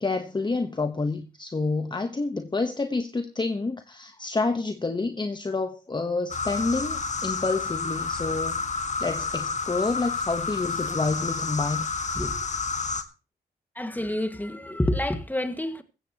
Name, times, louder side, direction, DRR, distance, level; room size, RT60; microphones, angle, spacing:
voice 1, 0.0-8.6 9.0-11.9, left 3 dB, 25° left, 1.1 m, -28 dB
sound 1, 6.3-13.0, left 4 dB, 45° left, 1.6 m, -30 dB
voice 2, 13.8-15.8, left 1 dB, 10° left, 1.9 m, -28 dB
15.0 x 15.0 x 3.0 m
cardioid pair, 65°, 17 cm